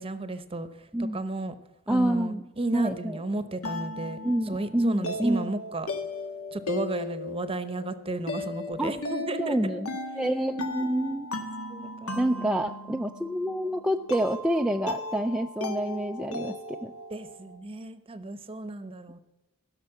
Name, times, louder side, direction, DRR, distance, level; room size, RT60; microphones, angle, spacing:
voice 1, 0.0-1.5 1.9-5.9 6.5-9.6 10.8-11.1 11.7-12.5 13.0-13.1 17.1-19.2, right 2 dB, 25° right, 12 dB, 0.8 m, -34 dB
voice 2, 1.9-2.4 2.7-3.2 4.2-5.5 8.8-8.9 9.4-9.9 10.2-11.3 12.2-16.9, right 1 dB, 5° right, 3 dB, 0.3 m, -27 dB
sound 1, 2.8-17.6, left 2 dB, 75° left, 1.4 m, -37 dB
16.0 x 6.6 x 7.7 m, 1.0 s
head